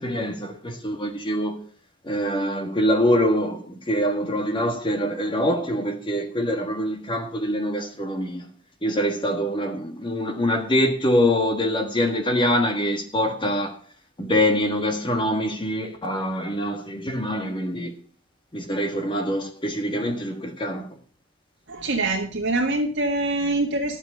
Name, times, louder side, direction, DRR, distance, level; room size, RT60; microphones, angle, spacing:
voice 1, 0.0-1.6 2.0-8.5 8.8-13.8 14.2-17.9 18.5-20.9, equal, 25° left, 1.6 m, -24 dB
voice 2, 21.7-24.0, right 2 dB, 55° right, 1.7 m, -24 dB
11.5 x 7.6 x 6.6 m
head